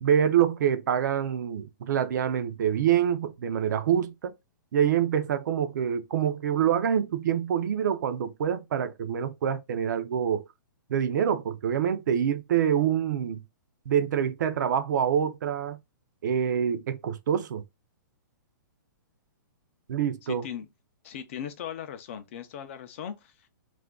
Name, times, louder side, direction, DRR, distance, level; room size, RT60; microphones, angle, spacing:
voice 1, 0.0-4.3 4.7-10.4 10.9-13.4 13.9-15.8 16.2-17.6 19.9-20.4, right 9 dB, 60° right, 0.4 m, -26 dB
voice 2, 20.2-20.7 21.0-23.5, left 9 dB, 35° left, 0.4 m, -38 dB
2.4 x 2.2 x 3.4 m
hypercardioid pair, 160°, 11 cm